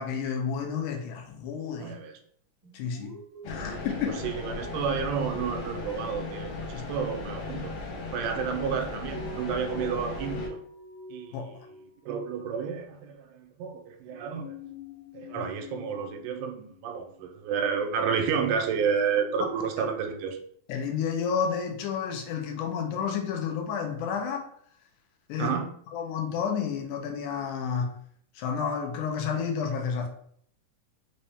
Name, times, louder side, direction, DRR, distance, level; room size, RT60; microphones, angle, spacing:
voice 1, 0.0-1.9 2.7-3.1 3.5-4.2 6.7-6.9 11.3-11.5 20.7-24.5 25.3-25.6 25.9-28.0 28.4-30.1, left 6 dB, 85° left, 2.2 m, -31 dB
voice 2, 1.8-2.2 3.5-3.7 4.2-7.7 8.1-10.6 11.1-11.5 12.1-14.5 15.1-20.4 25.4-25.7, right 6 dB, 85° right, 2.1 m, -30 dB
sound 1, 2.6-4.9 5.2-5.8 9.1-12.0 12.3-12.5 14.1-16.8, left 1 dB, 60° right, 0.4 m, -44 dB
sound 2, 3.4-10.5, left 3 dB, 70° left, 1.5 m, -37 dB
5.3 x 2.7 x 3.4 m
omnidirectional pair, 3.6 m